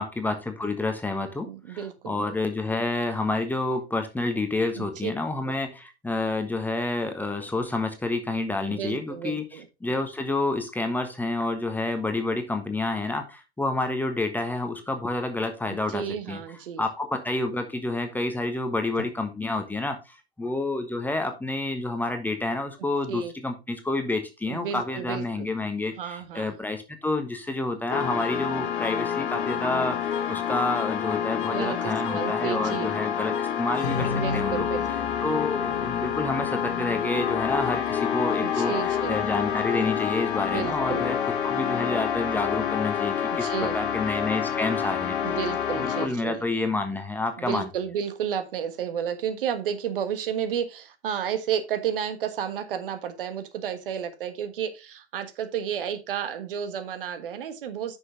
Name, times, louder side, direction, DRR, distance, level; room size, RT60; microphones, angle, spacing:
voice 1, 0.0-9.4 9.8-16.4 16.8-34.7 35.2-38.7 39.1-41.2 41.4-45.4 45.7-47.7, left 2 dB, 5° left, 6 dB, 1.2 m, -29 dB
voice 2, 1.4-2.1 4.8-5.1 5.4-5.5 8.6-9.6 15.7-16.8 23.1-23.3 24.5-25.5 26.0-26.6 31.4-32.9 34.1-35.2 38.4-39.2 40.5-41.1 43.3-43.8 45.2-46.4 47.4-58.0, right 8 dB, 60° right, 10 dB, 1.4 m, -32 dB
sound 1, 27.9-46.1, left 8 dB, 55° left, 1.5 m, -28 dB
9.6 x 6.2 x 3.3 m, 0.26 s
figure-of-eight pair, 95°, 32 cm